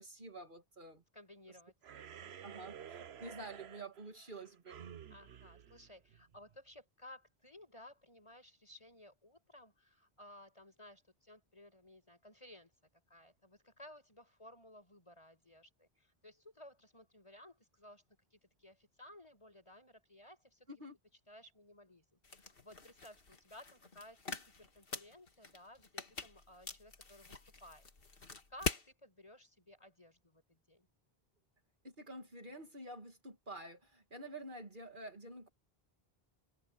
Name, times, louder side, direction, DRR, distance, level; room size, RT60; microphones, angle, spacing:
voice 1, 0.0-1.0 2.4-4.8 20.7-21.0 31.8-35.5, right 1 dB, 55° right, 2.4 m, -49 dB
voice 2, 1.1-1.7 2.2-2.6 5.1-12.7 13.1-18.0 18.3-20.7 21.3-30.9, left 1 dB, 30° left, 6.0 m, -58 dB
sound 1, 1.8-6.6, right 8 dB, 85° right, 1.1 m, -52 dB
sound 2, 22.2-28.9, left 4 dB, 65° left, 2.0 m, -44 dB
omnidirectional pair, 1.0 m